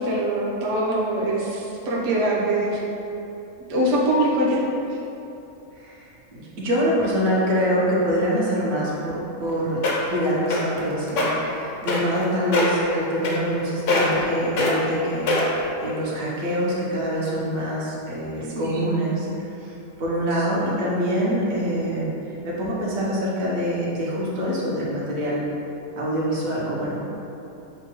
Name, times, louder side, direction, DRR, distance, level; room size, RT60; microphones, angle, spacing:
voice 1, 0.0-2.8 3.7-4.6 18.6-18.8, right 1 dB, 40° right, -6 dB, 0.5 m, -23 dB
voice 2, 5.8-9.8 10.1-19.3 19.6-22.1 22.4-25.4 26.0-27.0, equal, 70° right, -6 dB, 1.2 m, -25 dB
sound 1, 9.4-9.5 9.8-10.1 10.5-10.8 11.1-11.3 11.9-12.2 12.5-12.8 13.2-13.6 13.9-14.2 14.6-14.7 15.3-15.6 16.3-16.4, left 3 dB, 65° left, 0.9 m, -22 dB
6.5 x 2.2 x 2.9 m, 2.9 s
omnidirectional pair, 1.5 m